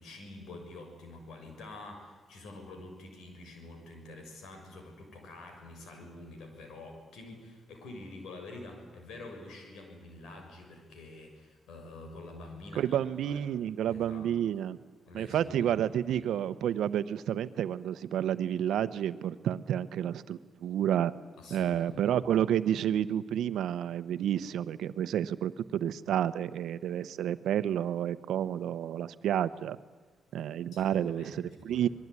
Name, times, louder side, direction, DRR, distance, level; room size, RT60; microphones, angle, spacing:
voice 1, 0.0-13.0 13.2-13.4 13.9-14.3 15.1-16.2 21.4-22.1 30.7-31.9, left 2 dB, 85° left, 4 dB, 6.5 m, -47 dB
voice 2, 12.7-14.8 15.1-21.1 21.5-29.8 30.3-31.9, right 10 dB, 85° right, 14 dB, 0.9 m, -30 dB
26.5 x 21.0 x 9.7 m, 1.4 s
cardioid pair, 75°, 0 cm